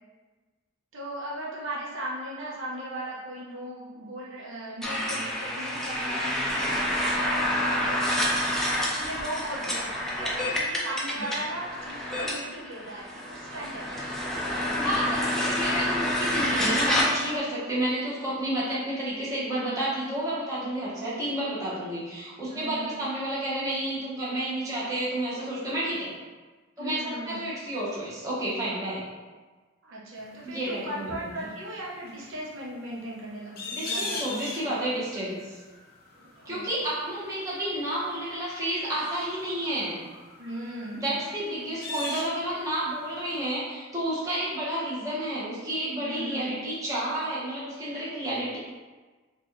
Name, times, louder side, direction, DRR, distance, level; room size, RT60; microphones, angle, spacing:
voice 1, 0.9-8.3 8.9-14.0 22.4-23.0 26.8-27.4 29.8-34.5 36.1-36.9 40.4-41.1 45.9-46.6, right 1 dB, 70° right, -5 dB, 0.7 m, -38 dB
sound 1, 4.8-17.4, left 1 dB, ahead, 0.4 m, -28 dB
voice 2, 14.6-26.1 26.8-29.1 30.4-31.4 33.7-35.6 36.4-40.0 40.9-48.6, right 1 dB, 15° right, -9 dB, 0.9 m, -31 dB
sound 2, 30.2-43.2 43.4-43.5, left 3 dB, 45° left, 0.6 m, -40 dB
3.9 x 2.4 x 3.0 m, 1.3 s
head